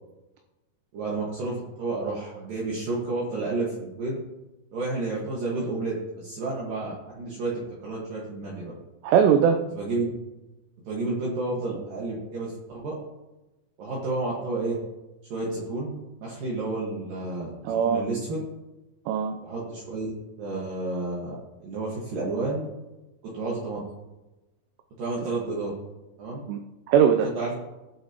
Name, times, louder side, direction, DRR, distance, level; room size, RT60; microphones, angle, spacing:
voice 1, 0.9-4.2 4.7-8.7 9.7-10.1 10.8-13.0 13.8-14.8 15.3-15.9 16.2-18.4 19.4-20.1 20.4-21.4 21.6-22.6 23.2-23.8 25.0-25.7 26.2-26.4 27.2-27.5, right 3 dB, 60° right, -5 dB, 2.9 m, -31 dB
voice 2, 9.0-9.6 17.6-18.1 19.1-19.4 26.5-27.3, right 7 dB, 80° right, 6 dB, 2.6 m, -21 dB
19.5 x 7.1 x 2.9 m, 1.0 s
omnidirectional pair, 5.2 m